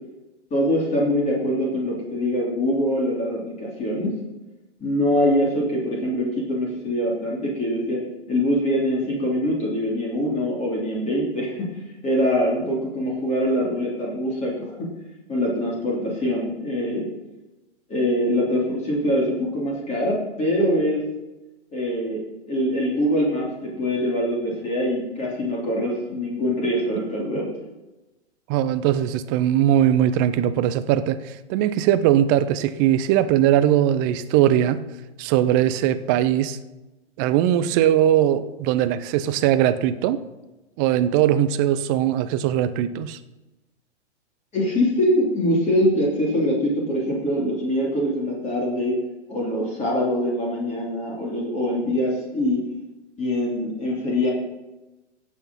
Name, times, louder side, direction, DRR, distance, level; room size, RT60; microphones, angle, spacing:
voice 1, 0.5-4.1 4.8-8.0 8.3-11.5 12.0-14.9 15.3-17.1 17.9-21.0 21.7-27.5 44.5-49.0 49.3-52.6 53.2-54.3, equal, 20° left, -4 dB, 3.3 m, -23 dB
voice 2, 28.5-34.8 35.2-36.6 37.2-40.2 40.8-43.2, right 11 dB, 20° right, 12 dB, 0.4 m, -20 dB
16.5 x 6.3 x 5.6 m, 1.1 s
figure-of-eight pair, 120°, 35 cm